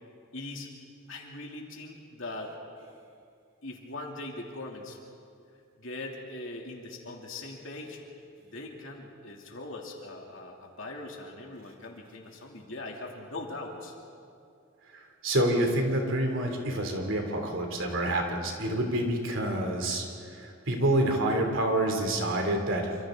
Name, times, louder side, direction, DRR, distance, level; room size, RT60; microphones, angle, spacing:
voice 1, 0.3-0.7 1.1-2.5 3.6-5.0 5.8-8.0 8.4-14.0, left 2 dB, 60° left, 0 dB, 3.0 m, -41 dB
voice 2, 15.2-20.0 20.3-22.9, right 1 dB, 60° right, 2 dB, 3.2 m, -27 dB
28.5 x 26.0 x 3.9 m, 2.4 s
head